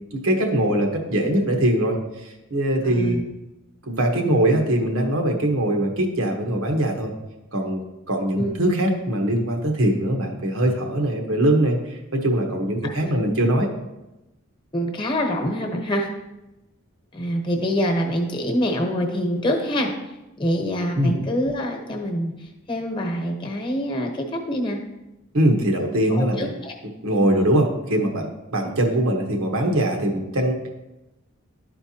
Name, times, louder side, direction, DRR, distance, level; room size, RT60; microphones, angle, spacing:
voice 1, 0.1-3.2 3.8-7.1 7.5-7.8 8.1-13.7 21.0-21.1 25.3-26.5 27.0-30.7, right 1 dB, 80° right, 2 dB, 1.1 m, -22 dB
voice 2, 2.8-3.2 8.4-8.6 12.8-13.2 14.7-16.1 17.1-19.9 20.4-22.3 22.7-24.8 26.1-26.7 27.3-27.4, equal, 25° left, 3 dB, 1.0 m, -25 dB
12.0 x 4.5 x 2.9 m, 0.98 s
head